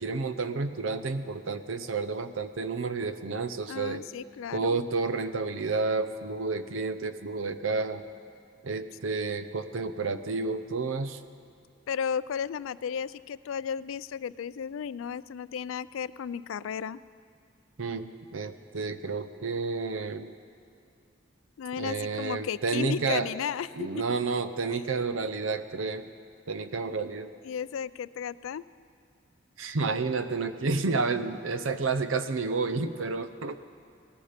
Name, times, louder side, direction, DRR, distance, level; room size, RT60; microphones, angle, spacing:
voice 1, 0.0-4.0 4.5-8.0 8.6-11.2 17.8-20.3 21.8-23.3 23.7-26.1 26.5-27.3 29.6-33.6, right 4 dB, 90° right, 11 dB, 0.7 m, -30 dB
voice 2, 3.7-4.8 11.9-17.0 21.6-23.7 24.0-24.2 27.4-28.6, left 7 dB, 90° left, 18 dB, 0.3 m, -34 dB
19.0 x 14.0 x 5.1 m, 2.3 s
head